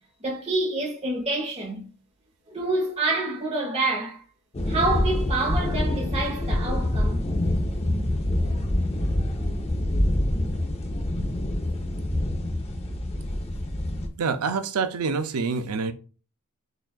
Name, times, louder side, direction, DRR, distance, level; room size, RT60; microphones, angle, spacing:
voice 1, 0.2-1.9 2.5-4.2 4.7-7.2, right 2 dB, 30° right, 0.9 m, -27 dB
sound 1, 4.5-14.1, left 1 dB, 30° left, 0.6 m, -26 dB
voice 2, 14.2-15.9, right 5 dB, 80° right, 0.5 m, -26 dB
6.3 x 2.4 x 2.3 m
head